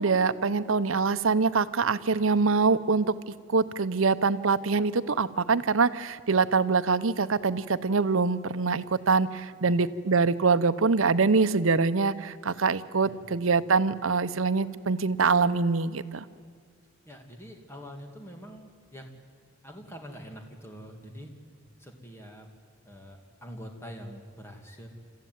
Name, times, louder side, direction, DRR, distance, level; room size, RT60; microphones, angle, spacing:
voice 1, 0.0-3.1 3.5-16.2, right 4 dB, 80° right, 13 dB, 0.8 m, -24 dB
voice 2, 17.1-19.1 19.6-21.3 21.8-22.5 22.8-24.9, equal, 10° left, 3 dB, 2.3 m, -45 dB
29.0 x 14.5 x 9.4 m, 2.1 s
head